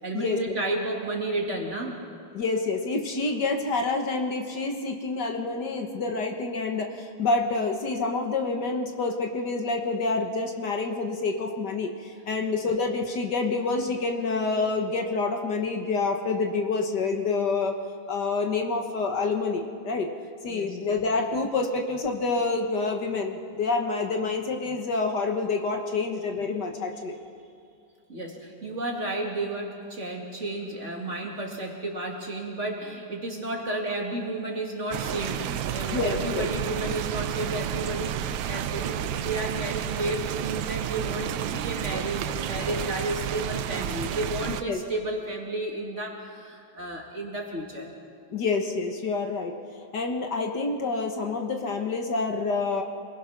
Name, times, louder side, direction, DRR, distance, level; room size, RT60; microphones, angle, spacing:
voice 1, 0.0-2.0 12.4-12.5 20.5-20.8 28.1-47.9, right 2 dB, 35° right, -1 dB, 2.9 m, -32 dB
voice 2, 2.3-17.8 18.1-20.1 20.4-27.2 35.9-36.5 44.7-44.8 48.3-49.6 49.9-52.8, left 3 dB, 60° left, 3 dB, 1.9 m, -27 dB
sound 1, 34.9-44.6, right 10 dB, 75° right, 1.4 m, -31 dB
27.0 x 20.5 x 5.9 m, 2.3 s
omnidirectional pair, 2.2 m